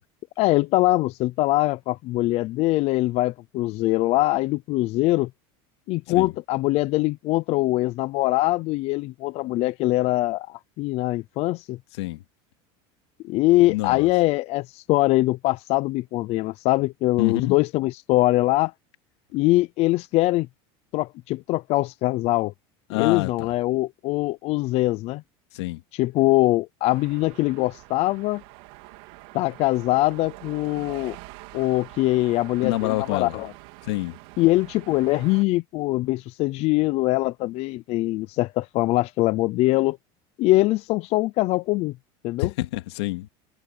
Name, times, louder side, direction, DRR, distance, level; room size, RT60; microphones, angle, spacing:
voice 1, 0.4-5.3 5.9-11.8 13.2-18.7 19.3-20.5 20.9-22.5 22.9-25.2 25.9-28.4 29.3-31.2 31.5-33.5 34.4-40.0 40.4-41.9 42.2-42.5, left 18 dB, 50° left, 0.6 m, -23 dB
voice 2, 13.7-14.1 17.2-17.6 22.9-23.5 25.5-25.8 32.6-33.4 33.9-34.2 42.4-43.3, left 18 dB, 90° left, 2.6 m, -27 dB
sound 1, 26.9-35.4, right 23 dB, 70° right, 3.8 m, -44 dB
supercardioid pair, 135°, 14 cm